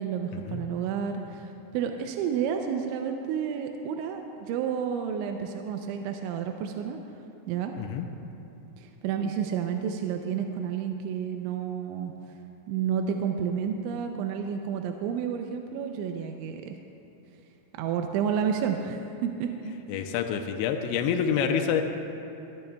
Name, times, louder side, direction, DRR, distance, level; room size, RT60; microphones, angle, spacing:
voice 1, 0.0-7.0 7.5-7.7 8.8-12.1 12.7-16.7 17.8-19.7, right 7 dB, 80° right, 4 dB, 2.8 m, -30 dB
voice 2, 19.9-21.8, left 7 dB, 85° left, 5 dB, 2.7 m, -27 dB
22.0 x 14.0 x 2.3 m, 2.9 s
omnidirectional pair, 5.7 m